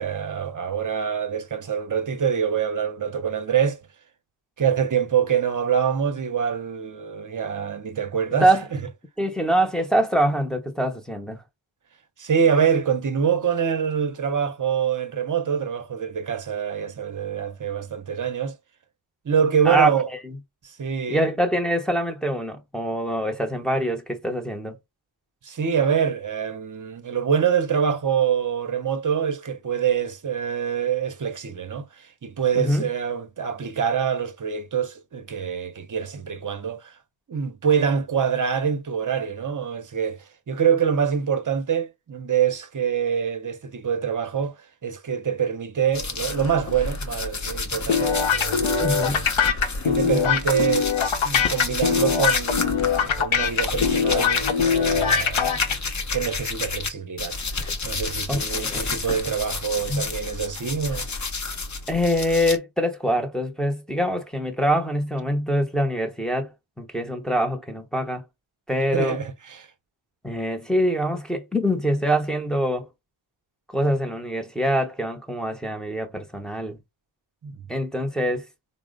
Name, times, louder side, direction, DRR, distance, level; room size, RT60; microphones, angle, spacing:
voice 1, 0.0-3.8 4.6-8.8 12.2-18.6 19.2-20.1 20.8-21.3 25.4-31.9 32.2-36.9 37.3-40.2 40.5-44.6 44.8-49.2 49.8-50.9 51.2-55.6 56.1-57.4 57.8-61.0 68.9-69.7 77.4-77.6, right 7 dB, 40° right, 0.7 m, -25 dB
voice 2, 9.2-11.4 19.6-19.9 20.2-20.4 21.1-24.8 32.5-32.9 48.8-49.3 50.0-50.2 58.3-58.9 59.9-60.1 61.9-66.5 66.8-68.2 68.7-69.2 70.2-72.9 73.7-76.8 77.7-78.4, equal, ahead, 0.7 m, -24 dB
sound 1, 45.9-56.9 57.2-62.6, left 3 dB, 35° left, 0.7 m, -30 dB
sound 2, 47.9-55.7, left 7 dB, 70° left, 0.8 m, -22 dB
4.1 x 2.1 x 3.7 m
wide cardioid pair, 125°, 49 cm